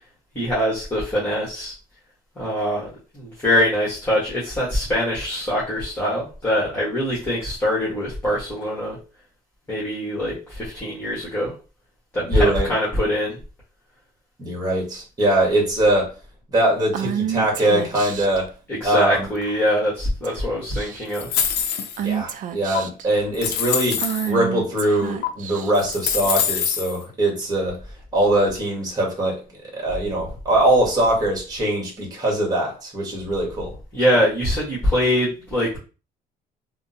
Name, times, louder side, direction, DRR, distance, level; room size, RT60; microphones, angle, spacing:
voice 1, 0.3-1.7 2.3-9.0 9.7-11.5 12.1-13.4 18.7-21.4 33.9-35.8, equal, 15° left, -6 dB, 1.4 m, -23 dB
voice 2, 12.3-12.7 14.4-16.1 16.5-18.5 18.8-19.3 22.0-27.8 28.1-29.4 29.7-33.8, right 1 dB, 20° right, -1 dB, 1.4 m, -22 dB
Female speech woman speaking / Whispering, 16.9-18.4 19.4-19.8 20.2-20.4 20.7-21.2 22.0-23.1 24.0-26.0, right 8 dB, 50° right, 0.4 m, -29 dB
sound 1, 21.1-22.1 22.8-22.9 23.3-24.3 25.2-25.3 25.7-27.0, left 8 dB, 80° left, 0.6 m, -24 dB
3.4 x 2.1 x 2.7 m, 0.35 s
cardioid pair, 110°, 17 cm